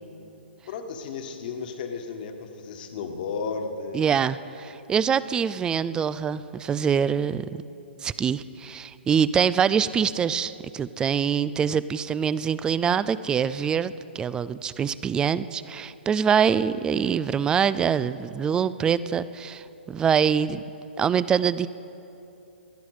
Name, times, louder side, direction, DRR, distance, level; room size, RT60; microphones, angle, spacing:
voice 1, 0.7-4.0, left 5 dB, 50° left, 5 dB, 1.5 m, -33 dB
voice 2, 3.9-7.6 8.0-20.6 21.0-21.7, right 7 dB, 15° right, 17 dB, 0.3 m, -24 dB
19.5 x 12.5 x 4.9 m, 2.9 s
hypercardioid pair, 130°, 6 cm